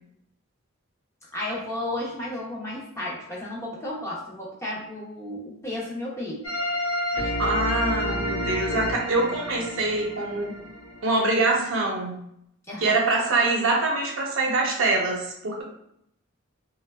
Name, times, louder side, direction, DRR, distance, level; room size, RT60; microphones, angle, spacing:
voice 1, 1.3-6.5 7.2-7.3 12.7-13.0, left 1 dB, 15° left, -5 dB, 0.5 m, -33 dB
sound 1, 6.4-11.2, left 1 dB, 85° left, 0.6 m, -29 dB
voice 2, 7.4-10.6 11.0-12.2 12.8-15.6, right 2 dB, 80° right, -1 dB, 0.6 m, -24 dB
3.2 x 2.1 x 2.2 m, 0.75 s
head